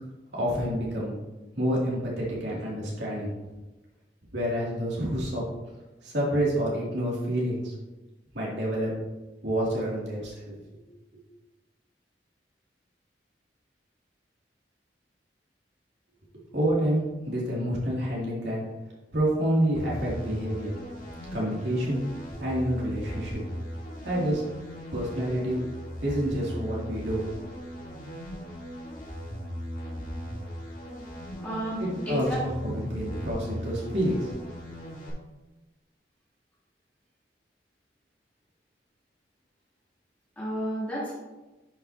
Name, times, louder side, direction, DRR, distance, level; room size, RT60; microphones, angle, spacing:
voice 1, 0.3-1.1 1.5-3.3 4.3-5.4 6.0-7.7 8.3-8.9 9.4-10.4 16.5-18.6 19.1-20.7 21.3-22.0 22.4-23.4 24.0-24.4 24.9-25.6 26.0-27.2 27.7-27.8 31.8-34.3, right 1 dB, 85° right, -5 dB, 2.7 m, -28 dB
sound 1, 19.7-35.1, equal, 55° left, 2.6 m, -38 dB
voice 2, 31.4-32.4 40.4-41.1, equal, 10° left, -8 dB, 2.8 m, -31 dB
10.5 x 5.8 x 2.9 m, 1.1 s
head